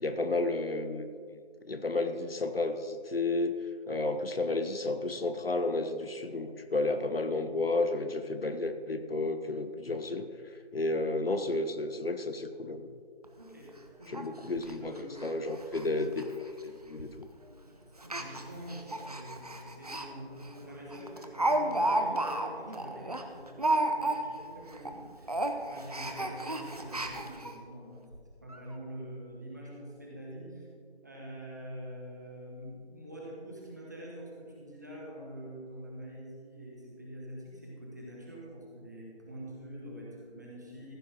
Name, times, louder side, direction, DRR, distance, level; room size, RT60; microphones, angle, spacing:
voice 1, 0.0-1.1 1.6-3.6 3.9-10.3 10.7-12.9 14.1-14.9 15.2-17.3, left 2 dB, 60° left, 9 dB, 0.9 m, -32 dB
Speech, 13.2-13.3 13.7-13.8 14.1-14.2 14.6-14.7 15.2-15.3 15.6-15.9 16.1-16.2 17.0-17.2 18.0-20.1 20.4-20.5 20.9-24.5 24.7-25.0 25.2-27.5 28.1-28.2 28.5-28.6, right 1 dB, 35° right, 0.8 m, -32 dB
voice 2, 13.4-13.7 14.0-15.2 17.6-17.7 18.0-30.6 31.0-41.0, equal, 15° right, -4 dB, 1.2 m, -45 dB
15.0 x 6.1 x 6.0 m, 2.1 s
figure-of-eight pair, 165°, 33 cm